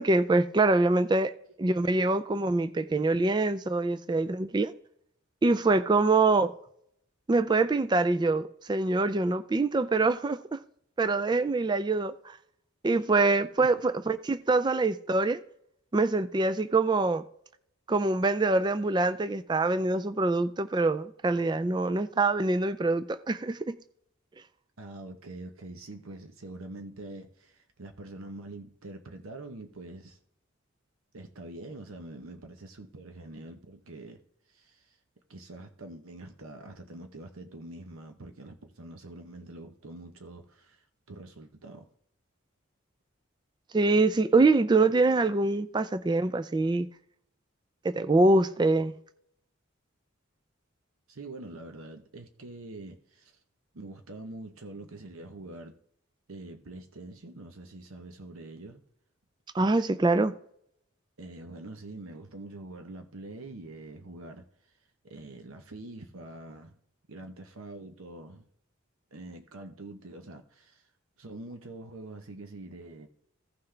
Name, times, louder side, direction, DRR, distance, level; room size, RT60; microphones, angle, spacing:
voice 1, 0.0-1.3 1.6-4.7 5.4-6.5 7.3-10.6 11.0-12.4 12.8-15.4 15.9-17.2 17.9-23.8 43.7-46.9 47.8-48.9 59.5-60.3, right 3 dB, 20° right, 0.3 m, -25 dB
voice 2, 24.8-30.2 31.1-34.2 34.5-35.0 35.3-41.9 51.1-53.4 53.7-55.8 56.3-58.8 61.2-64.8 65.0-66.8 67.1-68.4 69.1-70.9 71.2-73.1, right 2 dB, 80° right, 0.9 m, -45 dB
15.5 x 5.7 x 3.3 m
head